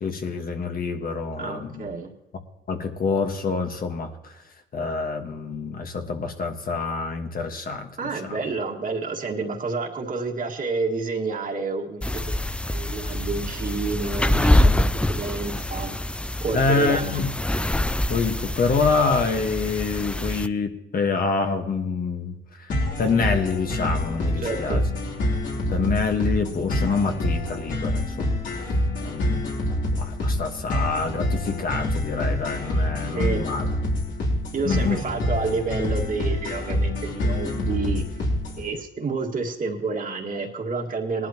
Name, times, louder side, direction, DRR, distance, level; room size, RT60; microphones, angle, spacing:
voice 1, 0.0-1.9 2.7-4.4 4.7-8.4 16.5-17.3 18.1-22.7 23.0-24.8 25.7-28.7 29.0-29.5 30.0-33.7 34.6-35.0, left 4 dB, 45° left, 5 dB, 1.4 m, -26 dB
voice 2, 1.4-2.1 8.0-12.2 12.7-14.7 15.1-15.9 16.4-17.2 24.4-24.8 32.8-32.9 33.1-33.4 34.5-38.0 38.6-41.3, right 4 dB, 45° right, 1 dB, 1.9 m, -29 dB
sound 1, 12.0-20.5, left 1 dB, 5° left, 0.4 m, -25 dB
sound 2, 22.7-38.7, left 1 dB, 70° left, 3.2 m, -26 dB
18.5 x 11.5 x 2.9 m, 0.89 s
cardioid pair, 90°, 20 cm